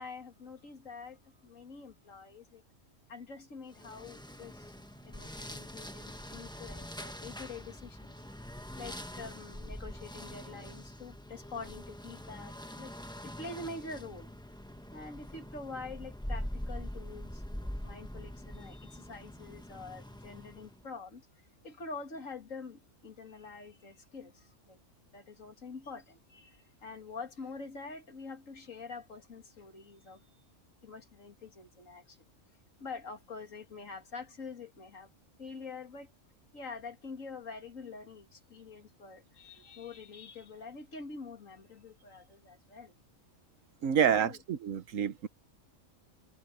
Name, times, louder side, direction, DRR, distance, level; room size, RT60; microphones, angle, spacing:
voice 1, 0.0-2.6 3.1-4.7 5.0-8.2 8.8-13.0 13.2-14.3 14.9-24.8 25.1-30.4 30.8-32.2 32.8-35.1 35.4-36.1 36.5-42.9 43.9-44.4, left 4 dB, 85° left, 2.7 m, -46 dB
sound 1, 3.7-20.8, equal, 5° left, 1.1 m, -44 dB
voice 2, 43.8-45.3, right 8 dB, 90° right, 1.4 m, -28 dB
omnidirectional pair, 1.3 m